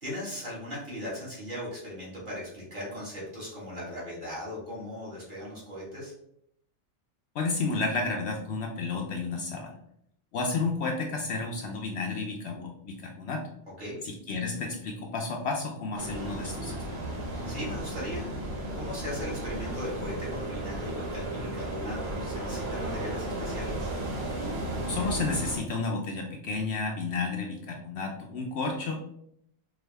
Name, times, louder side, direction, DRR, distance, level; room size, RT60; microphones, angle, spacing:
voice 1, 0.0-6.1 13.8-14.0 17.5-18.3 18.7-23.9, left 1 dB, 40° right, -7 dB, 1.9 m, -38 dB
voice 2, 7.3-9.8 10.3-13.4 14.0-17.1 24.9-29.0, left 3 dB, 65° left, 1 dB, 0.7 m, -31 dB
sound 1, 15.9-25.6, right 1 dB, 85° right, 1.6 m, -34 dB
4.7 x 2.4 x 3.3 m, 0.74 s
omnidirectional pair, 1.3 m